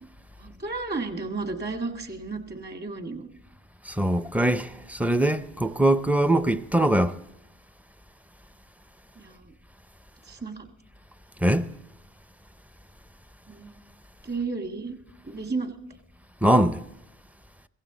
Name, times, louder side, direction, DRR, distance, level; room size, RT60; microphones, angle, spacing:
voice 1, 0.4-3.3 9.2-9.5 10.3-10.7 13.5-13.8 14.2-15.0 15.2-15.7, right 3 dB, 35° right, 2.0 m, -33 dB
voice 2, 3.9-7.2 11.4-11.7 16.4-16.8, right 1 dB, 5° right, 0.6 m, -22 dB
16.5 x 15.5 x 4.0 m
cardioid pair, 90°, 30 cm